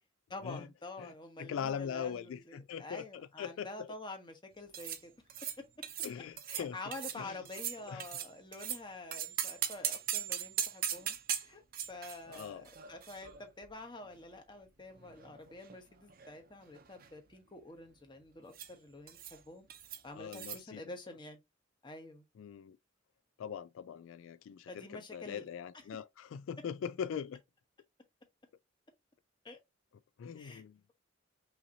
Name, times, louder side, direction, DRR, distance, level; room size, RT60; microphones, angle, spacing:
voice 1, 0.3-5.1 5.4-5.5 6.5-11.6 11.9-19.7 20.0-21.4 21.8-22.2 24.7-25.4 25.9-26.0 29.4-29.6 30.3-30.6, left 2 dB, 25° left, 1.0 m, -48 dB
voice 2, 1.4-3.9 6.0-6.8 7.2-7.4 7.9-8.0 12.3-12.6 20.1-20.8 22.4-22.8 23.4-27.4 30.2-30.8, left 7 dB, 85° left, 0.3 m, -41 dB
sound 1, 4.7-5.0 5.3-5.6 5.8-6.1 6.4-6.6 6.9-7.2 7.4-8.8 9.1-13.8 14.1-14.2 14.9-15.8 16.1-16.4 16.6-17.1 18.5-18.7 19.1-19.4 19.7-20.0 20.3-20.6, right 10 dB, 50° right, 0.6 m, -39 dB
5.6 x 2.8 x 2.7 m
head